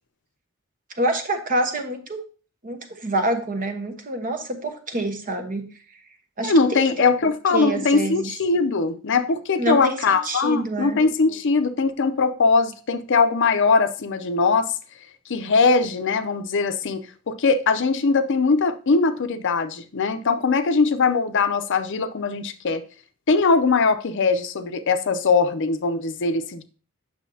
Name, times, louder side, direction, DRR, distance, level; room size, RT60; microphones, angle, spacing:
voice 1, 1.0-2.2 2.6-5.7 6.4-6.8 7.2-8.3 9.6-11.0, right 1 dB, 40° right, 1.1 m, -27 dB
voice 2, 6.4-14.7 15.3-22.8 23.3-26.6, left 4 dB, 60° left, 0.6 m, -21 dB
8.3 x 6.2 x 2.7 m
head